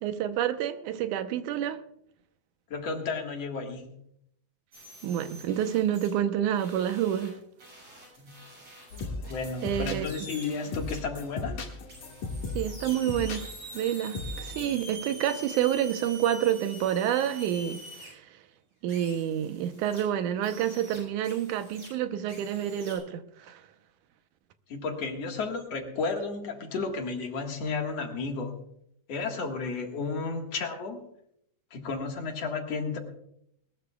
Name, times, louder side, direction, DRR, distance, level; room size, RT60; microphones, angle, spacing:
voice 1, 0.0-1.8 5.0-7.4 9.6-10.1 12.6-13.5 13.7-18.2 18.8-23.6, right 10 dB, 90° right, 2.4 m, -28 dB
voice 2, 2.7-3.9 8.2-8.4 9.3-11.6 24.7-28.6 29.1-31.0 31.7-33.0, left 4 dB, 60° left, 2.7 m, -33 dB
sound 1, 4.7-6.2 6.5-11.0 11.9-18.1 18.9-20.0 20.4-21.9 22.3-23.0, right 1 dB, 60° right, 8.4 m, -46 dB
sound 2, 8.9-14.7, left 3 dB, 80° left, 3.3 m, -38 dB
20.0 x 20.0 x 2.3 m
omnidirectional pair, 3.5 m